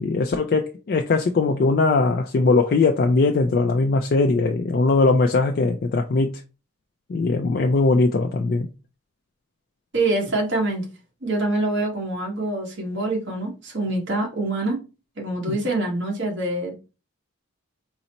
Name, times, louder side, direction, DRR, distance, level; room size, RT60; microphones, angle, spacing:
voice 1, 0.0-6.4 7.1-8.7 15.5-15.6, left 3 dB, 45° left, 0.3 m, -20 dB
voice 2, 9.9-10.8 11.2-14.8 15.2-16.8, right 2 dB, 55° right, 1.2 m, -25 dB
3.9 x 2.0 x 4.2 m
head